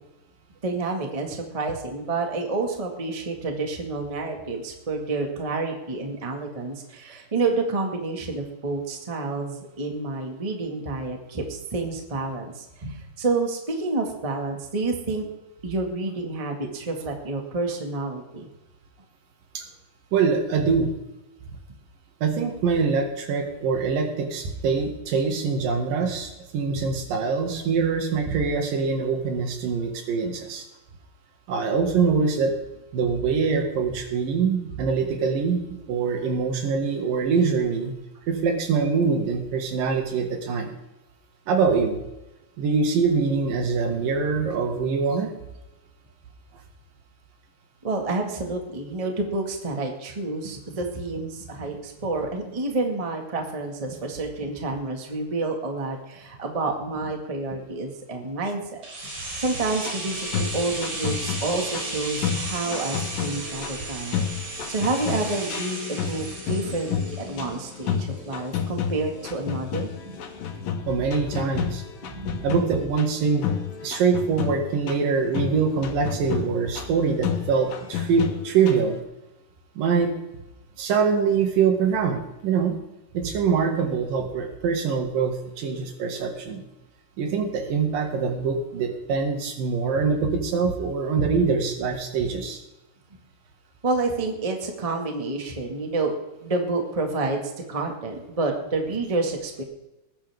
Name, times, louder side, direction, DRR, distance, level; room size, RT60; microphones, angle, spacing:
voice 1, 0.6-15.3 15.6-18.5 47.8-70.2 70.6-70.7 72.0-72.5 93.8-96.1 96.4-97.4 97.7-99.6, right 3 dB, 15° right, 3 dB, 1.1 m, -29 dB
voice 2, 20.1-20.9 22.2-30.7 31.5-32.5 32.9-37.9 38.3-40.7 41.5-42.0 42.6-45.3 70.9-71.8 72.4-73.5 73.8-79.0 79.8-80.1 80.8-82.8 83.1-86.6 87.2-92.6, right 5 dB, 85° right, 4 dB, 3.5 m, -24 dB
sound 1, 58.8-68.7 68.9-69.0, right 2 dB, 40° right, 4.2 m, -35 dB
sound 2, 59.6-79.0, left 8 dB, 85° left, 3.0 m, -31 dB
20.0 x 10.5 x 3.6 m, 0.99 s
omnidirectional pair, 3.8 m